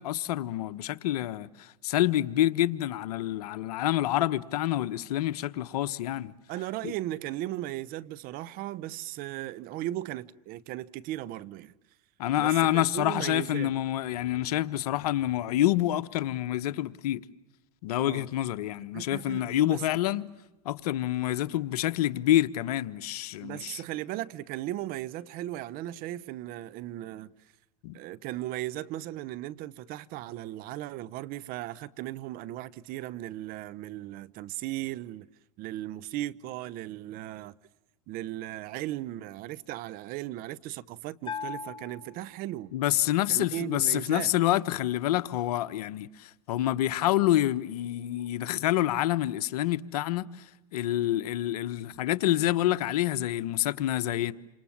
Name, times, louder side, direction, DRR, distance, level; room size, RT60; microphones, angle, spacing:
voice 1, 0.0-6.3 6.8-6.9 12.2-17.2 17.8-20.2 20.6-23.8 27.8-28.0 42.7-50.3 50.7-54.3, left 14 dB, 70° left, 1.2 m, -27 dB
voice 2, 6.5-11.7 12.4-13.7 18.0-18.3 18.9-19.9 23.4-27.3 27.9-35.3 35.6-37.5 38.1-42.7 43.3-44.4, right 15 dB, 45° right, 1.0 m, -37 dB
Bell, 41.3-42.9, left 6 dB, 25° left, 1.7 m, -40 dB
28.5 x 27.0 x 7.4 m
hypercardioid pair, 115°, 20 cm